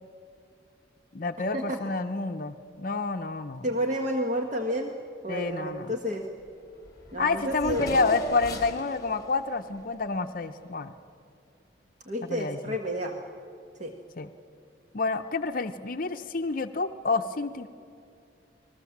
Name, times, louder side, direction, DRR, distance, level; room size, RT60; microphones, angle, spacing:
voice 1, 1.1-3.7 5.3-5.9 7.2-10.9 12.3-12.7 14.2-14.3 14.9-17.7, left 3 dB, 50° left, 7 dB, 0.7 m, -29 dB
voice 2, 3.6-4.9 5.2-6.3 7.1-8.1 12.1-13.2 13.8-13.9, equal, 40° right, 3 dB, 1.5 m, -30 dB
Race car auto racing / Accelerating revving vroom, 6.5-6.6 6.8-10.8, left 1 dB, 20° left, 3.2 m, -39 dB
30.0 x 20.5 x 7.3 m, 2.6 s
head